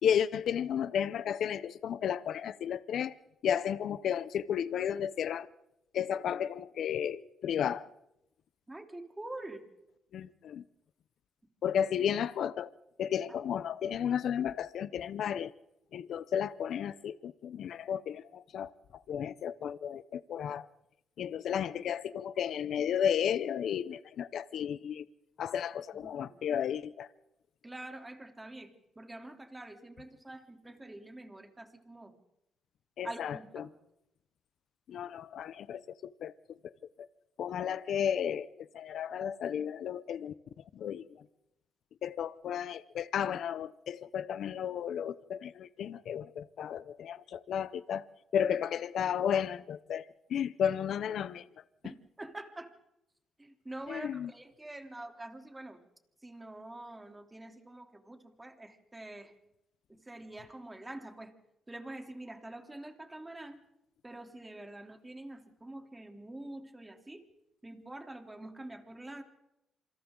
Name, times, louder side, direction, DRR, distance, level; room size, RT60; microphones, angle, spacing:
voice 1, 0.0-3.1 3.4-5.5 5.9-7.9 10.1-10.6 11.6-12.7 13.0-15.5 15.9-20.7 21.2-25.0 25.4-27.1 33.0-33.7 34.9-35.8 36.2-36.3 36.6-36.7 37.4-40.3 40.7-41.2 42.0-48.0 48.3-51.5 53.9-54.3, left 9 dB, 70° left, 0.7 m, -33 dB
voice 2, 8.7-9.6 25.9-26.4 27.6-32.1 33.0-33.7 51.8-52.7 53.4-55.8 56.2-59.3 59.9-61.3 61.7-63.6 64.0-67.2 67.6-69.2, right 1 dB, 15° right, 3.3 m, -46 dB
27.5 x 26.0 x 3.9 m
cardioid pair, 90°, 0 cm